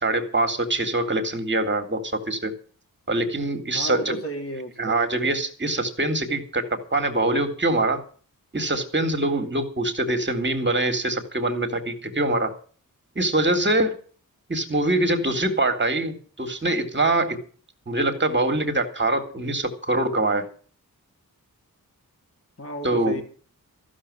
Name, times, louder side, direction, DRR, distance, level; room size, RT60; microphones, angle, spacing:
voice 1, 0.0-2.5 3.1-4.2 4.8-8.0 8.5-12.6 13.2-13.9 14.5-17.4 17.9-20.5 22.8-23.2, right 2 dB, 30° right, 6 dB, 2.0 m, -24 dB
voice 2, 3.7-5.0 22.6-23.2, right 1 dB, 40° left, 2 dB, 3.4 m, -33 dB
14.0 x 6.3 x 9.6 m, 0.43 s
wide cardioid pair, 125°, 35 cm